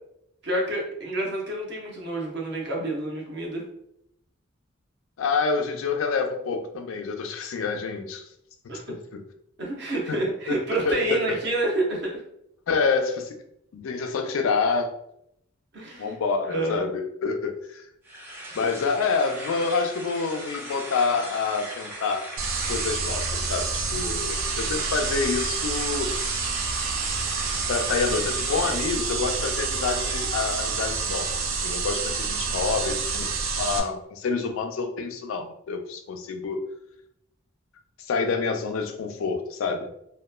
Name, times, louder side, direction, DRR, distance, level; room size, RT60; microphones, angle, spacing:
voice 1, 0.4-3.6 8.7-9.0 9.6-12.2 15.7-16.2 16.5-16.9, right 1 dB, 55° right, -2 dB, 0.7 m, -28 dB
voice 2, 5.2-8.2 8.9-9.2 10.1-10.2 10.5-11.4 12.7-13.3 13.7-14.9 16.0-17.8 18.5-22.3 22.7-26.4 27.7-33.3 33.6-36.6 38.1-39.9, left 4 dB, 85° left, 6 dB, 0.4 m, -27 dB
sound 1, 18.0-29.0, right 1 dB, 10° right, 0.4 m, -39 dB
sound 2, 22.4-33.8, right 4 dB, 90° right, 0.4 m, -28 dB
2.8 x 2.2 x 2.2 m, 0.77 s
head